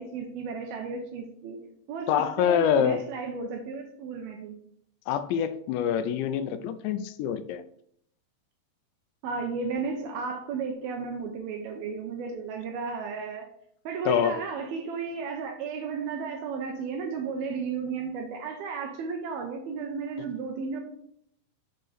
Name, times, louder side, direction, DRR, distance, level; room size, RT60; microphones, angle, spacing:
voice 1, 0.0-1.6 1.9-4.6 9.2-13.5 13.9-20.8, right 5 dB, 75° right, 3 dB, 2.3 m, -34 dB
voice 2, 2.1-3.0 5.1-7.6 14.1-14.4, left 9 dB, 85° left, 11 dB, 2.8 m, -25 dB
7.4 x 4.4 x 5.0 m, 0.69 s
omnidirectional pair, 5.2 m